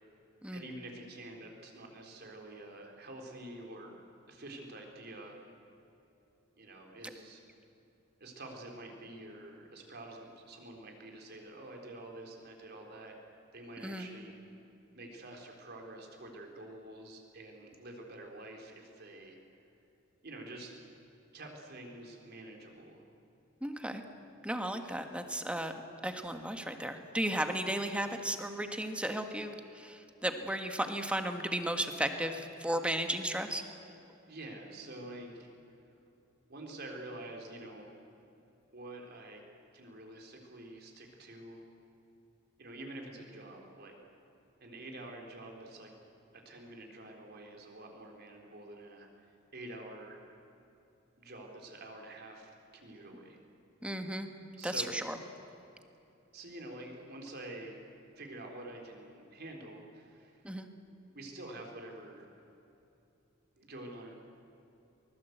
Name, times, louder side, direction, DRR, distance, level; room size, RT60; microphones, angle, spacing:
voice 1, 0.5-4.0 4.3-5.4 6.6-7.4 8.2-13.2 13.5-14.3 14.9-19.4 20.2-20.7 21.3-23.0 34.3-35.5 36.5-37.9 38.7-39.4 39.7-41.6 42.6-44.0 44.6-45.9 46.3-49.1 49.5-50.2 51.2-53.4 54.6-54.9 56.3-57.8 58.2-60.5 61.1-62.3 63.6-64.1, right 1 dB, 55° right, 1 dB, 3.9 m, -47 dB
voice 2, 23.6-24.0 24.4-25.7 26.0-33.6 53.8-54.3 54.6-55.2 60.4-60.7, right 1 dB, 5° right, 6 dB, 1.5 m, -34 dB
23.5 x 20.5 x 8.1 m, 2.9 s
head